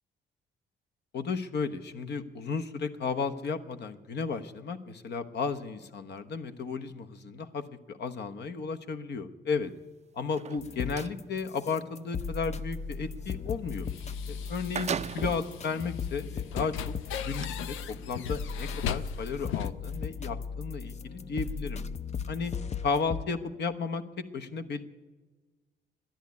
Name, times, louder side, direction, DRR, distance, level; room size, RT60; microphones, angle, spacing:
voice 1, 1.1-9.7 10.1-13.9 14.3-16.9 17.2-21.8 22.3-22.5 22.8-24.0 24.3-24.8, left 5 dB, 60° left, 7 dB, 1.1 m, -34 dB
sound 1, 10.2-11.2 14.0-14.1 14.4-15.5 16.2-16.3 17.2-17.5, right 7 dB, 35° right, 0.4 m, -36 dB
sound 2, 10.6-23.2, left 6 dB, 35° left, 0.6 m, -37 dB
sound 3, 12.3-19.7, left 9 dB, 90° left, 0.6 m, -39 dB
13.0 x 10.5 x 9.6 m, 1.3 s
cardioid pair, 90°, 20 cm